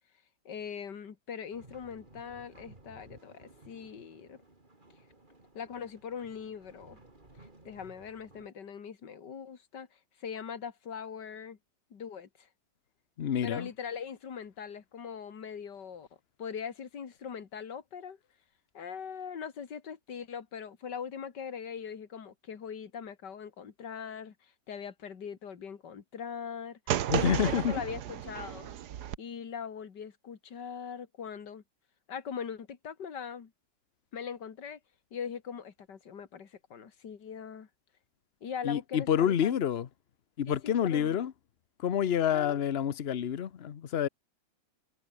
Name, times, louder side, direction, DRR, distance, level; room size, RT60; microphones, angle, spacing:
voice 1, 0.4-4.4 5.5-7.0 7.4-11.6 11.9-12.5 13.4-16.1 16.4-18.2 18.7-26.8 27.2-28.7 29.2-31.6 32.1-33.5 34.1-34.8 35.1-37.7 38.4-39.6 40.5-41.2 42.3-42.6, left 7 dB, 65° left, 2.6 m, -41 dB
sound 1, 1.5-8.5, right 2 dB, 25° right, 3.6 m, -57 dB
voice 2, 13.2-13.7 27.1-27.7 38.6-39.9 40.4-41.3 41.8-44.1, left 9 dB, 45° left, 0.8 m, -28 dB
sound 2, 26.9-29.2, right 11 dB, 60° right, 1.4 m, -33 dB
omnidirectional pair, 2.0 m